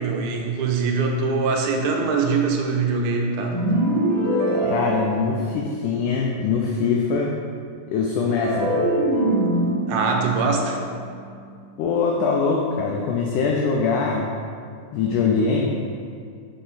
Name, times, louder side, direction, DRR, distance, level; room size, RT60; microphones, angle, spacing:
voice 1, 0.0-3.6 4.6-4.7 9.9-10.8, right 4 dB, 85° right, 2 dB, 2.5 m, -23 dB
sound 1, 3.5-5.9 8.3-11.6, right 1 dB, 70° right, 2.2 m, -24 dB
voice 2, 4.7-7.4 7.9-8.9 11.8-14.3 14.9-15.8, left 4 dB, 90° left, 0 dB, 1.8 m, -22 dB
6.7 x 3.8 x 4.0 m, 2.4 s
omnidirectional pair, 4.2 m